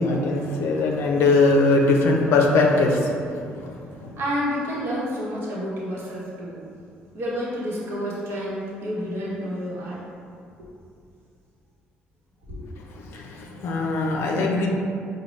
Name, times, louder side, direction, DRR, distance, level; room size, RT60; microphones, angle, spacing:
voice 1, 0.0-4.1 13.1-14.7, left 3 dB, 75° left, 0 dB, 0.4 m, -21 dB
voice 2, 4.2-6.6 7.1-10.0 10.6-10.7 12.5-12.7, equal, 65° right, -6 dB, 1.0 m, -29 dB
4.9 x 2.2 x 3.1 m, 2.4 s
supercardioid pair, 70°, 4 cm